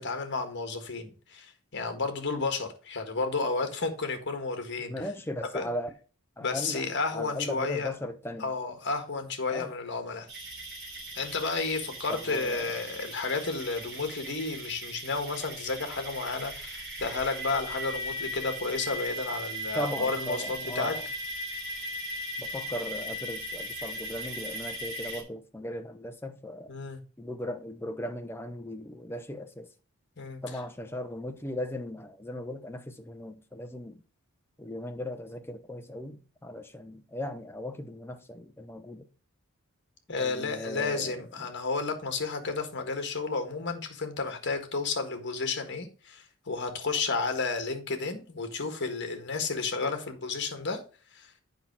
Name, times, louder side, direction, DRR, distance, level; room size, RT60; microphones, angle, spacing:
voice 1, 0.0-4.9 5.5-5.6 6.4-7.9 8.4-10.3 11.1-20.9 26.7-27.0 30.2-30.4 40.1-50.8 51.1-51.3, left 4 dB, 55° left, 1.6 m, -32 dB
voice 2, 4.9-5.9 6.4-6.8 7.1-8.5 9.5-9.7 12.1-12.8 19.7-21.1 22.4-26.7 27.2-29.7 30.4-34.0 34.6-39.1 40.2-41.3, left 1 dB, 10° left, 0.8 m, -37 dB
sound 1, 10.3-25.2, equal, 50° right, 3.3 m, -38 dB
8.1 x 5.7 x 4.5 m
head